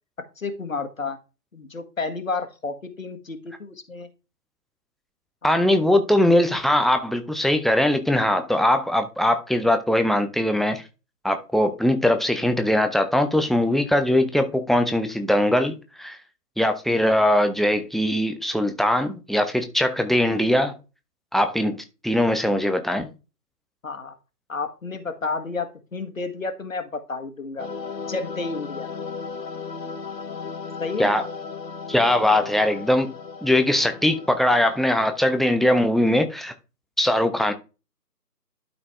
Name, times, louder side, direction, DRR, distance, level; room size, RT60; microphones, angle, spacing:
voice 1, 0.4-1.2 1.5-4.1 5.4-5.7 23.8-24.1 24.5-27.7 28.1-28.9 30.8-31.1, left 4 dB, 50° left, 1.5 m, -31 dB
voice 2, 5.4-10.8 11.2-16.2 16.6-20.7 21.3-23.1 31.0-31.2 31.9-33.1 33.4-36.5 37.0-37.5, left 1 dB, ahead, 0.5 m, -21 dB
sound 1, 27.6-35.5, left 5 dB, 80° left, 1.3 m, -36 dB
12.0 x 4.3 x 3.4 m
figure-of-eight pair, 165°, 50 cm